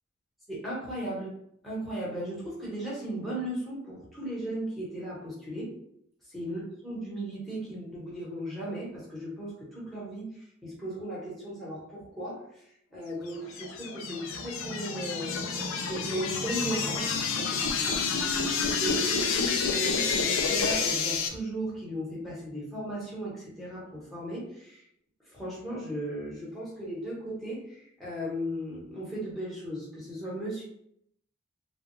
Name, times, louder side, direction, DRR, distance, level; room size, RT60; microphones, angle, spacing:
voice 1, 0.5-1.3 1.6-5.7 6.3-10.2 10.6-12.4 12.9-18.0 18.8-24.8 25.3-30.6, right 1 dB, ahead, -7 dB, 1.3 m, -36 dB
sound 1, 13.3-21.3, left 5 dB, 90° left, 0.5 m, -29 dB
3.5 x 2.5 x 3.1 m, 0.72 s
head